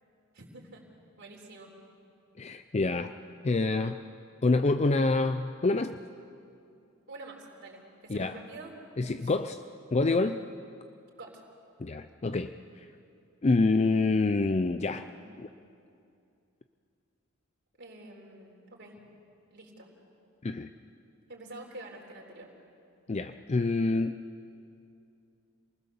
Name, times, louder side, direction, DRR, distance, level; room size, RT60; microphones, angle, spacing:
voice 1, 0.3-0.8 1.2-1.7 7.1-8.7 9.2-9.3 11.2-11.4 17.8-19.0 19.5-19.9 21.3-22.5, right 2 dB, 55° right, -1 dB, 3.8 m, -47 dB
voice 2, 2.4-3.1 3.4-4.0 4.4-6.0 8.1-8.4 9.0-9.6 9.9-10.4 11.8-12.5 13.4-15.1 15.4-15.5 20.4-20.7 23.1-24.2, left 3 dB, 30° left, 9 dB, 0.5 m, -27 dB
27.0 x 20.0 x 7.0 m, 2.5 s
head